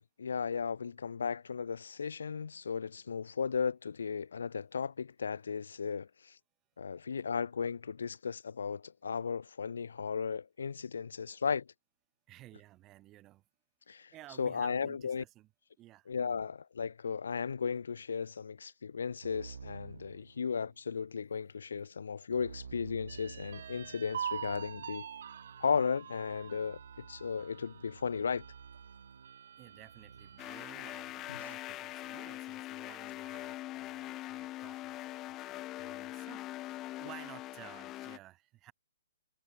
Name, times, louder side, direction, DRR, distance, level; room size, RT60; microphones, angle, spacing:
voice 1, 0.0-6.1 6.8-11.6 13.9-14.1 14.4-15.2 16.1-25.1 25.6-28.4 31.3-31.4, left 6 dB, 80° left, 0.9 m, -35 dB
voice 2, 12.3-13.4 14.1-15.5 15.8-16.4 29.6-36.6 37.0-38.7, right 16 dB, 20° right, 5.5 m, -55 dB
Keyboard (musical), 19.2-20.9 22.3-30.7, right 6 dB, 80° right, 5.9 m, -52 dB
sound 1, 23.1-30.7 31.2-31.3 31.7-32.3, right 8 dB, 60° right, 0.7 m, -45 dB
sound 2, 30.4-38.2, left 16 dB, 20° left, 0.4 m, -42 dB
hypercardioid pair, 155°, 0 cm